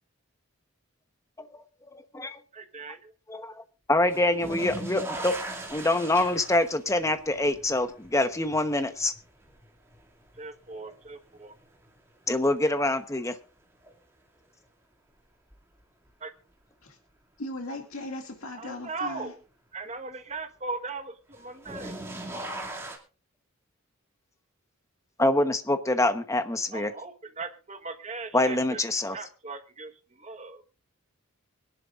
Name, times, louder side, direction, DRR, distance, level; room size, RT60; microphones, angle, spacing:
voice 1, 2.5-3.1 10.4-11.5 16.2-16.3 18.6-19.3 19.7-22.0 26.7-28.8 29.1-29.9 30.2-30.6, right 4 dB, 30° right, 1.3 m, -38 dB
voice 2, 3.3-3.6 3.9-5.3 5.7-9.1 12.3-13.4 25.2-26.9 28.3-29.2, left 2 dB, 15° left, 1.0 m, -25 dB
sound 1, 4.1-11.1 11.6-12.2 13.8-13.9 15.5-15.6 21.3-23.0, right 1 dB, 10° right, 2.5 m, -39 dB
voice 3, 17.4-19.3, left 1 dB, 70° left, 2.2 m, -38 dB
24.5 x 11.0 x 2.5 m
head